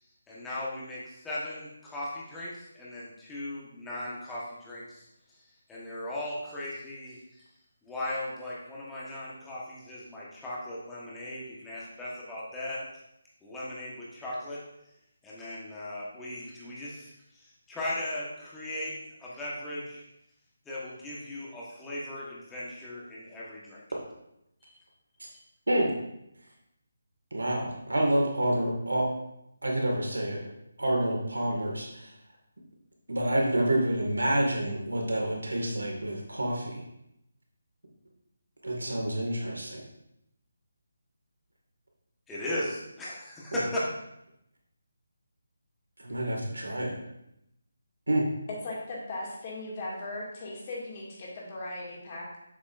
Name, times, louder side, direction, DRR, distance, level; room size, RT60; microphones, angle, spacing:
voice 1, 0.3-5.1 5.7-7.4 7.8-12.8 13.4-14.6 15.2-20.0 20.6-23.8 24.6-24.8 42.3-43.8, left 1 dB, 10° left, -7 dB, 1.3 m, -37 dB
voice 2, 27.3-29.1 29.6-30.4 30.8-32.1 33.1-36.8 38.6-39.8 46.0-46.9 48.1-48.3, right 1 dB, 85° right, 0 dB, 2.1 m, -28 dB
voice 3, 48.6-52.4, left 2 dB, 35° left, -4 dB, 2.3 m, -38 dB
7.3 x 7.0 x 2.6 m, 0.82 s
figure-of-eight pair, 155°, 0 cm